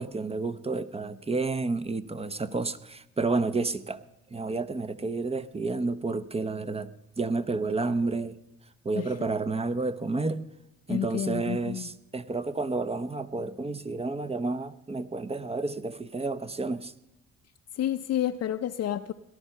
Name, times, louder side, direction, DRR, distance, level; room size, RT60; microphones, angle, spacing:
voice 1, 0.0-4.0 4.3-6.9 7.2-8.4 8.8-10.4 10.9-16.9, right 3 dB, 20° right, 0.7 m, -30 dB
voice 2, 10.9-11.9 17.8-19.1, left 11 dB, 55° left, 0.6 m, -30 dB
18.0 x 12.0 x 5.5 m
cardioid pair, 90°, 30 cm